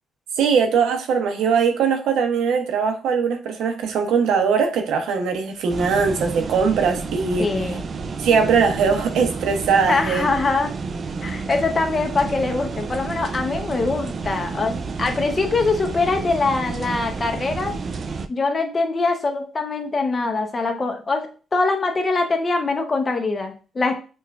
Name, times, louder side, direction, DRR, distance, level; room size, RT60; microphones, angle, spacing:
voice 1, 0.4-7.5 8.2-10.3, right 6 dB, 80° right, 5 dB, 0.6 m, -20 dB
sound 1, 5.7-18.3, right 4 dB, 45° right, 0.3 m, -30 dB
voice 2, 7.4-7.8 9.9-10.7 11.2-17.7 18.3-24.0, left 3 dB, 30° left, 4 dB, 0.7 m, -23 dB
5.3 x 2.2 x 2.3 m, 0.37 s
cardioid pair, 90°, 0 cm